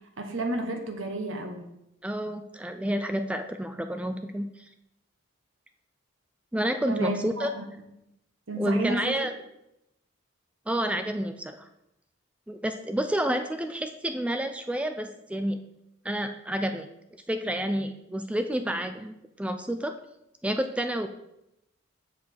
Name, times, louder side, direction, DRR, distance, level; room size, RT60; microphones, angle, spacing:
voice 1, 0.2-1.6 6.9-7.6 8.5-9.2, right 2 dB, 70° right, 4 dB, 1.2 m, -31 dB
voice 2, 2.0-4.6 6.5-7.5 8.6-9.3 10.7-11.7 12.5-15.6 16.0-16.9 17.3-19.9 20.4-21.1, equal, 5° right, 7 dB, 0.3 m, -29 dB
7.3 x 6.0 x 4.6 m, 0.85 s
head